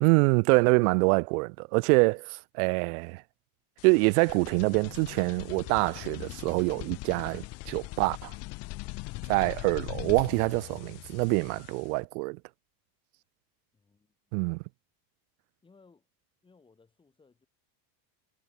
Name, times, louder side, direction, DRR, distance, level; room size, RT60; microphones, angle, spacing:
voice 1, 0.0-3.2 3.8-8.3 9.3-12.4 14.3-14.6, right 31 dB, 60° right, 0.5 m, -25 dB
sound 1, 3.8-12.0, left 23 dB, 30° left, 0.6 m, -41 dB
voice 2, 13.7-14.2 15.6-16.1 16.4-17.5, left 4 dB, 10° left, 7.6 m, -62 dB
cardioid pair, 180°, 48 cm